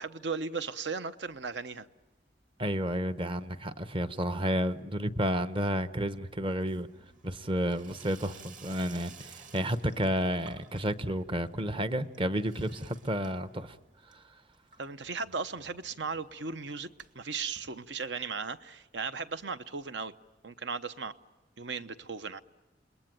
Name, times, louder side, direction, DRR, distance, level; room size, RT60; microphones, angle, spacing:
voice 1, 0.0-1.9 14.8-16.9 17.1-20.1 20.4-21.1 21.6-22.4, right 4 dB, 70° right, 0.9 m, -36 dB
Water tap faucet / Sink (filling or washing), 1.3-2.1 2.3-2.9 3.2-18.4 18.8-18.9 19.1-19.2 19.4-19.5 20.5-20.6, right 5 dB, 45° right, 2.3 m, -57 dB
voice 2, 2.6-6.9 7.2-13.8 14.1-14.2, equal, 30° right, 0.9 m, -31 dB
29.0 x 21.0 x 9.1 m
head